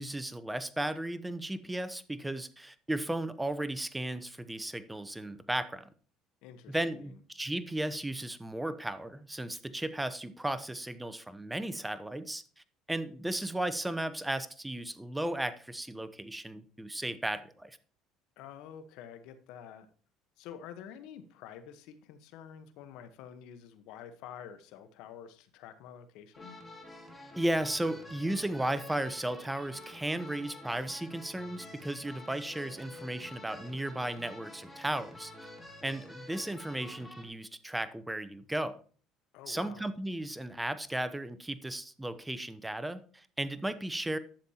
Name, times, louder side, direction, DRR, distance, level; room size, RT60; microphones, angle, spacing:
voice 1, 0.0-5.9 6.7-12.4 12.9-17.8 27.4-35.5 35.8-38.8 39.5-44.2, right 1 dB, 10° right, 0.8 m, -35 dB
voice 2, 6.4-7.2 18.4-19.9 20.4-26.6 39.3-39.9, left 9 dB, 75° left, 1.1 m, -48 dB
sound 1, 26.3-37.3, left 1 dB, 15° left, 2.3 m, -49 dB
11.5 x 7.2 x 2.9 m
supercardioid pair, 95°, 0 cm